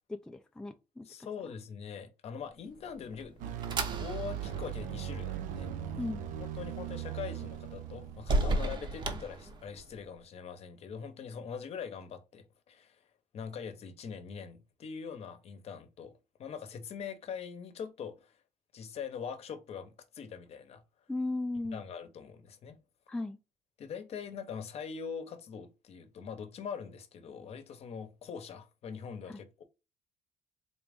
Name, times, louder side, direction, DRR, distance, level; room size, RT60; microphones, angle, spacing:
voice 1, 0.1-1.3 6.0-6.2 21.1-21.8 23.1-23.4 29.3-29.4, left 2 dB, 5° left, 0.3 m, -36 dB
voice 2, 1.0-3.6 4.0-5.7 6.4-13.0 13.3-18.4 18.7-20.8 21.7-22.8 23.8-29.6, left 6 dB, 50° left, 0.8 m, -43 dB
sound 1, 2.7-10.0, right 2 dB, 35° right, 0.8 m, -37 dB
sound 2, 3.4-8.7, right 9 dB, 80° right, 0.5 m, -39 dB
3.9 x 2.5 x 3.4 m
cardioid pair, 130°, 13 cm